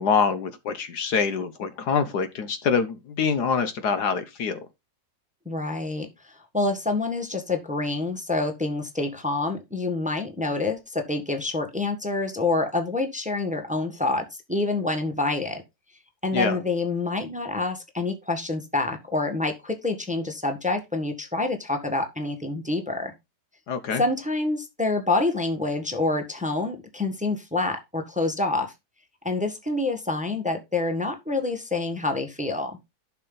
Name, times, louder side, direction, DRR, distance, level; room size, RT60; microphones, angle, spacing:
voice 1, 0.0-4.6 16.3-16.6 23.7-24.0, left 5 dB, 65° left, 1.4 m, -25 dB
voice 2, 5.4-15.6 16.2-23.1 23.9-28.7 29.2-32.8, left 2 dB, 5° right, 1.4 m, -27 dB
11.5 x 6.0 x 4.0 m
omnidirectional pair, 2.0 m